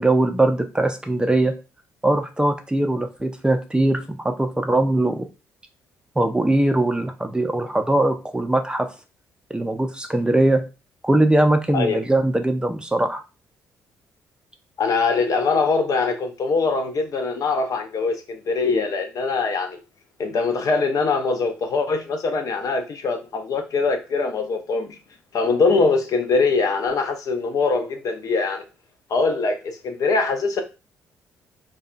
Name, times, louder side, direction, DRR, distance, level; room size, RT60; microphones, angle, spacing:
voice 1, 0.0-1.5 2.0-5.3 6.2-8.9 9.5-10.6 11.0-13.2, right 1 dB, 10° right, 0.4 m, -21 dB
voice 2, 14.8-19.8 20.2-25.0 25.3-28.6 29.1-30.6, left 4 dB, 50° left, 0.5 m, -22 dB
2.7 x 2.2 x 2.4 m
hypercardioid pair, 50°, 7 cm